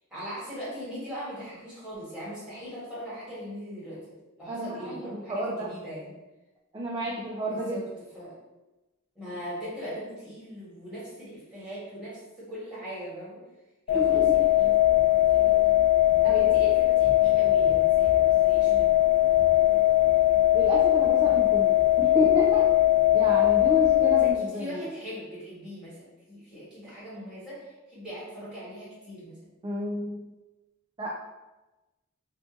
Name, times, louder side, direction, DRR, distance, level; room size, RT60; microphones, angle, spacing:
voice 1, 0.1-4.0 4.4-6.1 7.5-7.8 8.1-8.3 9.1-13.4 13.9-15.7 16.2-19.0 24.2-29.4, equal, 5° right, -10 dB, 1.5 m, -40 dB
voice 2, 4.5-5.7 6.7-7.8 13.9-14.2 16.2-16.5 20.5-22.6 23.1-24.8 29.6-30.3 31.0-31.1, equal, 20° right, -5 dB, 0.4 m, -30 dB
sound 1, 13.9-24.3, left 14 dB, 50° left, 0.4 m, -20 dB
2.6 x 2.4 x 3.7 m, 1.1 s
head